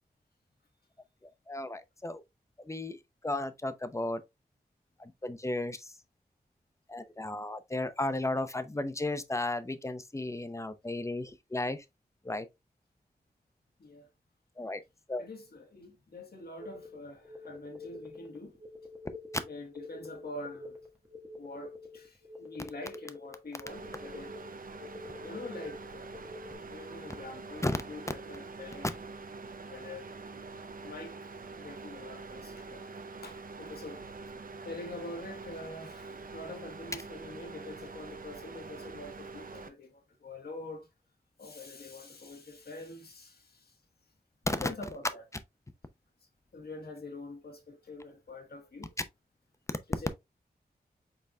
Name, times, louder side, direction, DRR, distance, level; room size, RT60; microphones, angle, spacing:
voice 1, 1.5-2.2 2.6-3.0 3.2-4.2 5.0-5.9 6.9-11.8 12.2-12.5 14.6-14.8 15.1-15.3 27.6-27.8 44.5-44.9, left 2 dB, 15° left, 0.6 m, -34 dB
voice 2, 15.2-18.6 19.5-20.8 21.4-24.3 25.2-26.2 26.5-28.9 29.7-30.1 30.8-31.2 31.5-32.9 33.2-34.0 34.6-40.9 41.4-43.8 44.5-45.2 46.5-48.9 49.9-50.1, left 2 dB, 70° left, 1.3 m, -45 dB
sound 1, 16.6-26.6, left 3 dB, 10° right, 1.6 m, -47 dB
sound 2, 23.7-39.7, right 4 dB, 60° right, 0.6 m, -45 dB
5.4 x 4.0 x 2.3 m
wide cardioid pair, 85°, 17 cm